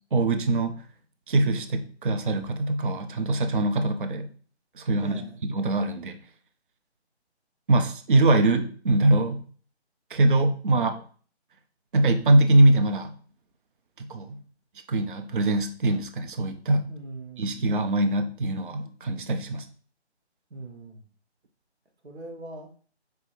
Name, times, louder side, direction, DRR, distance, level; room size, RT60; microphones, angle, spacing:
voice 1, 0.1-0.8 1.3-4.3 4.8-6.2 7.7-9.4 10.1-11.0 11.9-13.1 14.0-14.4 14.9-16.9 17.4-19.7, right 2 dB, 50° right, 7 dB, 0.5 m, -23 dB
voice 2, 5.0-5.4 16.9-17.7 20.5-21.1 22.0-22.7, right 2 dB, 75° right, 2 dB, 1.1 m, -41 dB
4.6 x 2.6 x 3.1 m, 0.43 s
figure-of-eight pair, 155°, 34 cm